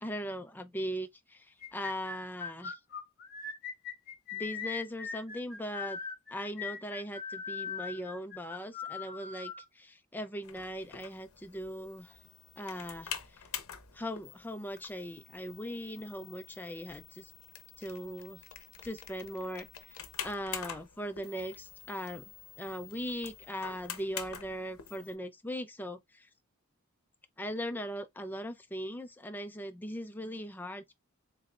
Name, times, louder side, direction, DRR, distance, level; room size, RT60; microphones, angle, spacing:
voice 1, 0.0-2.8 4.3-6.0 6.3-12.2 12.6-13.5 13.9-17.3 17.8-18.4 18.8-26.3 27.4-30.9, equal, 10° left, 0.5 m, -39 dB
sound 1, 1.6-9.6, left 5 dB, 45° left, 1.2 m, -40 dB
sound 2, 10.4-25.2, left 8 dB, 85° left, 0.7 m, -46 dB
3.8 x 3.2 x 2.4 m
head